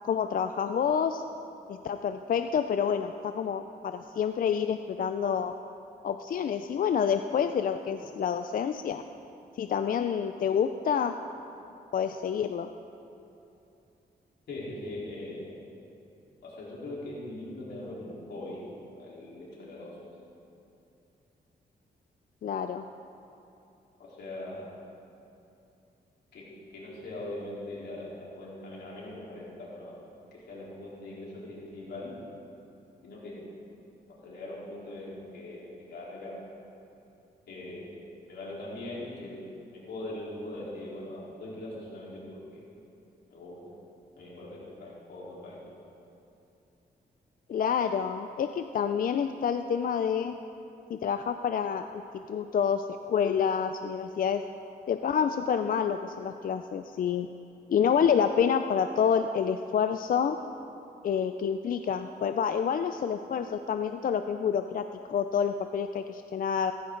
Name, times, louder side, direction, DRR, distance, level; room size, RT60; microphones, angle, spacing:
voice 1, 0.0-1.2 1.7-5.5 6.0-9.0 9.6-11.1 11.9-12.7 22.4-22.8 47.5-50.3 50.9-51.8 52.3-54.4 54.9-57.3 57.7-60.4 61.0-64.8 65.1-66.7, left 7 dB, 55° left, 8 dB, 0.5 m, -28 dB
voice 2, 14.5-15.5 16.4-18.6 19.0-20.1 24.0-24.7 26.3-26.5 26.7-30.0 30.3-32.2 33.0-33.5 34.2-36.4 37.5-38.0 38.3-39.4 39.7-42.6 43.3-43.7 44.2-45.7, left 1 dB, 90° left, -6 dB, 4.0 m, -41 dB
16.0 x 14.5 x 3.9 m, 2.8 s
wide cardioid pair, 115°, 17 cm